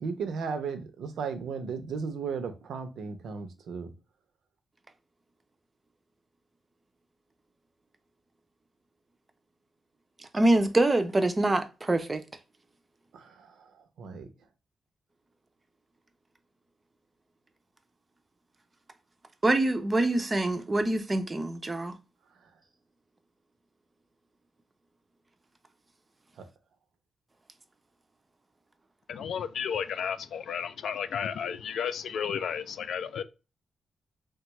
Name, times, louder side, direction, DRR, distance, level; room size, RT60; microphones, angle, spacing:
voice 1, 0.0-3.9 13.1-14.3, right 5 dB, 85° right, 0.6 m, -35 dB
voice 2, 10.3-12.2 19.4-22.0, right 2 dB, 20° right, 0.4 m, -25 dB
voice 3, 29.1-33.2, left 7 dB, 75° left, 0.3 m, -33 dB
3.3 x 2.3 x 2.9 m
wide cardioid pair, 140°, 0 cm